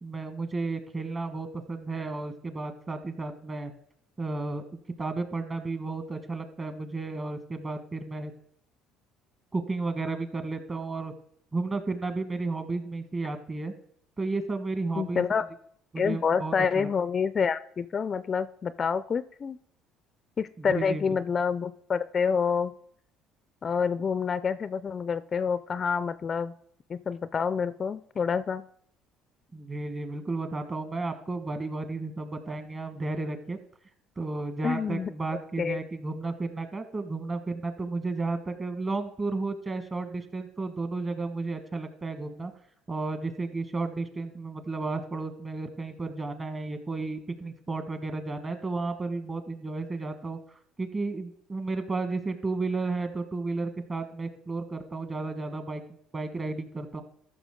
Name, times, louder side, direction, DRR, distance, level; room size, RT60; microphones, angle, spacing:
voice 1, 0.0-3.7 4.2-8.3 9.5-11.1 11.5-13.7 14.2-15.4 15.9-16.9 20.6-21.2 29.5-33.6 34.2-42.5 42.9-50.4 50.8-55.8 56.1-57.0, right 3 dB, 30° right, 9 dB, 1.5 m, -33 dB
voice 2, 15.0-15.4 16.0-19.6 20.4-22.7 23.6-26.5 26.9-28.6 34.6-35.1 35.6-35.8, left 6 dB, 40° left, 15 dB, 0.4 m, -28 dB
14.5 x 6.0 x 3.7 m, 0.69 s
supercardioid pair, 80°, 0 cm